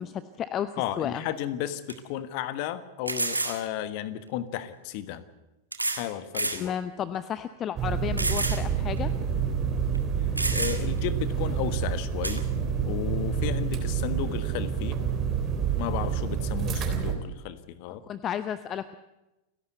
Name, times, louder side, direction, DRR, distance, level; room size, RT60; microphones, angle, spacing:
voice 1, 0.0-0.7 1.0-1.2 6.6-9.1 18.1-19.0, left 9 dB, 30° left, 14 dB, 0.7 m, -32 dB
voice 2, 0.8-5.2 5.9-6.7 10.5-12.4 12.8-15.0 15.8-18.0, left 11 dB, 45° left, 13 dB, 1.4 m, -33 dB
sound 1, 1.3-1.4 1.9-2.0 3.1-3.6 4.7-4.8 5.7-6.1 6.3-6.6 7.1-7.2 8.2-8.6 9.0-9.1 9.9-10.0 10.4-11.0 12.2-12.4, right 2 dB, 85° right, 1.8 m, -29 dB
sound 2, 7.8-17.1, right 7 dB, 30° right, 3.6 m, -28 dB
30.0 x 11.5 x 8.0 m, 0.99 s
figure-of-eight pair, 90°, 0 cm